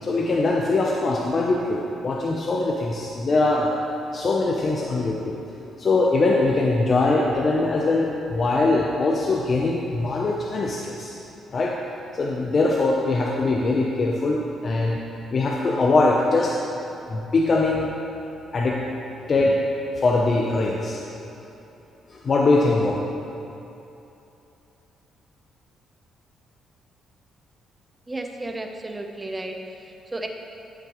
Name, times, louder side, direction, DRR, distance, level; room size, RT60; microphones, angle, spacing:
voice 1, 0.0-3.7 4.1-5.4 5.8-11.1 11.5-11.7 12.1-15.0 15.3-16.5 17.1-17.9 18.5-18.8 19.3-19.6 19.9-21.0 22.1-23.0, left 3 dB, 40° left, -2 dB, 0.7 m, -22 dB
voice 2, 28.1-30.3, right 2 dB, 20° right, 3 dB, 0.8 m, -33 dB
13.5 x 5.8 x 3.1 m, 2.9 s
cardioid pair, 90°, 0 cm